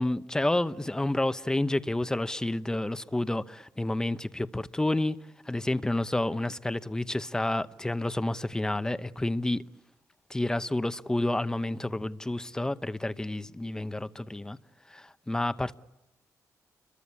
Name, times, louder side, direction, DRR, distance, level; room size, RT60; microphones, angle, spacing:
voice 1, 0.0-5.2 5.5-9.6 10.3-14.6 14.9-15.7, left 1 dB, 10° left, 0.9 m, -29 dB
29.5 x 23.0 x 8.4 m
cardioid pair, 110°, 6 cm